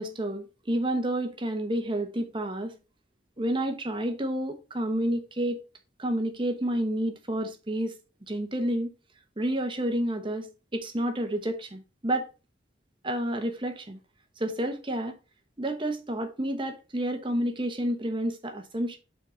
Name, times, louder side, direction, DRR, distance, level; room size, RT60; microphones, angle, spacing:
voice 1, 0.0-2.8 3.4-5.6 6.0-8.0 8.3-8.9 9.4-12.3 13.0-14.0 14.4-15.2 15.6-19.0, right 1 dB, 25° right, 1.0 m, -30 dB
5.9 x 4.3 x 5.0 m
head